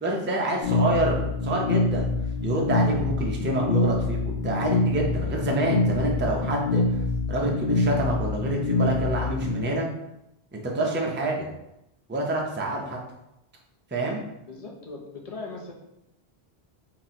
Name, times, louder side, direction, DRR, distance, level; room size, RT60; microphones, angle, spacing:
voice 1, 0.0-2.1 2.4-4.2 4.4-6.8 7.3-9.9 10.5-11.5 12.1-13.0 13.9-14.2, right 1 dB, 15° right, -1 dB, 0.4 m, -27 dB
sound 1, 0.6-9.6, left 2 dB, 65° left, 0.9 m, -25 dB
voice 2, 14.5-15.7, left 3 dB, 45° left, 0 dB, 0.5 m, -39 dB
2.9 x 2.6 x 4.1 m, 0.84 s
omnidirectional pair, 1.1 m